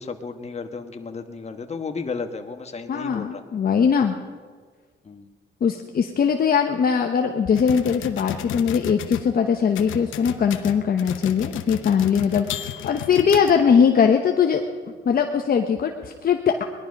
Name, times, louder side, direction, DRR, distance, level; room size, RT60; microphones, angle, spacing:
voice 1, 0.0-3.4 5.0-5.3, left 4 dB, 35° left, 6 dB, 1.4 m, -33 dB
voice 2, 2.9-4.1 5.6-14.6 15.0-16.6, left 7 dB, 50° left, 4 dB, 1.0 m, -20 dB
sound 1, 7.6-9.3 9.8-13.9, left 11 dB, 80° left, 0.9 m, -34 dB
20.0 x 11.5 x 5.3 m, 1.5 s
cardioid pair, 90°, 20 cm